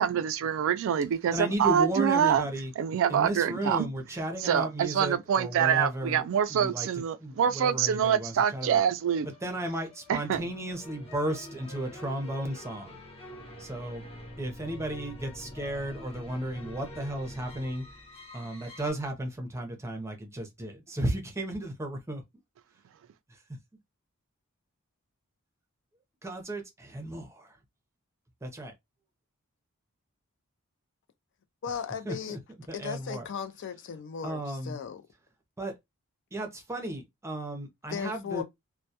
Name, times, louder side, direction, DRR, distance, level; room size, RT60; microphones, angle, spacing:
voice 1, 0.0-2.4 2.8-3.9 4.5-9.3 10.1-10.4, right 8 dB, 65° right, 0.3 m, -25 dB
voice 2, 1.3-2.7 3.1-8.8 9.3-13.0 13.6-14.0 14.4-17.8 18.3-22.2 23.3-23.6 26.2-27.6 28.4-28.7 32.0-32.4 32.7-33.3 34.2-34.8 35.6-35.7 36.3-38.4, right 1 dB, 15° right, 0.6 m, -34 dB
sound 1, 9.1-18.9, left 1 dB, 25° left, 0.8 m, -46 dB
voice 3, 31.6-32.4 32.7-35.0 37.9-38.4, left 7 dB, 55° left, 0.4 m, -36 dB
2.2 x 2.1 x 2.7 m
head